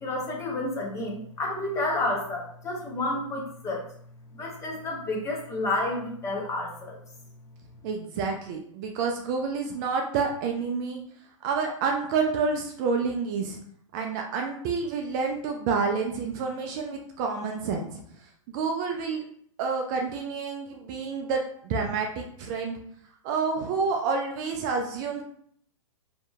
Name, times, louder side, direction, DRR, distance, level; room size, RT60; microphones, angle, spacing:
voice 1, 0.0-3.8 4.3-7.0, left 2 dB, 15° left, -1 dB, 0.6 m, -30 dB
voice 2, 7.8-11.0 11.4-13.6 13.9-18.0 18.5-19.2 19.6-22.8 23.2-25.2, right 5 dB, 35° right, 2 dB, 0.3 m, -29 dB
2.7 x 2.7 x 2.3 m, 0.63 s
hypercardioid pair, 115°, 17 cm